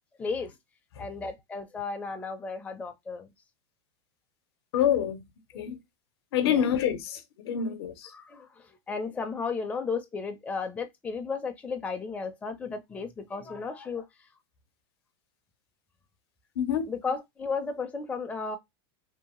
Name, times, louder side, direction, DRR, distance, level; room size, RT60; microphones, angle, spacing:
voice 1, 0.2-0.5 1.0-3.3 5.5-5.8 6.4-6.7 8.1-14.3 16.9-18.6, left 4 dB, 10° left, 0.4 m, -34 dB
voice 2, 4.7-5.2 5.5-5.8 6.3-8.1 16.6-16.9, left 9 dB, 75° left, 0.7 m, -27 dB
2.7 x 2.1 x 2.9 m
supercardioid pair, 130°, 13 cm